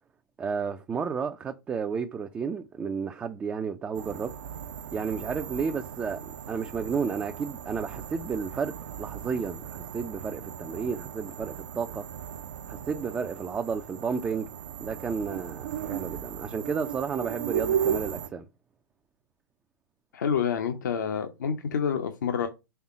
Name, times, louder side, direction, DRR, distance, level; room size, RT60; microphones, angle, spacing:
voice 1, 0.4-4.3 4.9-12.1 12.7-14.5 14.8-18.4, right 6 dB, 10° right, 0.4 m, -32 dB
sound 1, 3.9-18.3, right 9 dB, 60° right, 0.6 m, -36 dB
voice 2, 20.1-22.5, left 7 dB, 60° left, 0.8 m, -28 dB
5.7 x 3.6 x 4.7 m
figure-of-eight pair, 110°, 11 cm